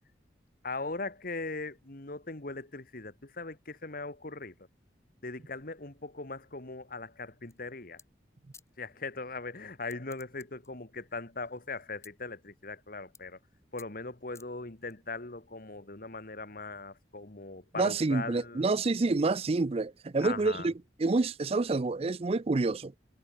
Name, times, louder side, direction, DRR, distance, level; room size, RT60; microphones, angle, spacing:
voice 1, 0.6-4.5 5.2-8.0 8.8-13.4 13.7-18.7 20.2-20.7, left 3 dB, 50° left, 2.0 m, -40 dB
sound 1, 7.5-7.7 8.0-8.1 8.5-8.7 9.8-10.7 11.1-12.1 12.6-12.8 13.1-13.4 13.8-13.9 14.3-14.9, left 5 dB, 15° left, 3.7 m, -55 dB
voice 2, 17.8-20.7 21.0-22.9, right 3 dB, 35° right, 0.5 m, -28 dB
head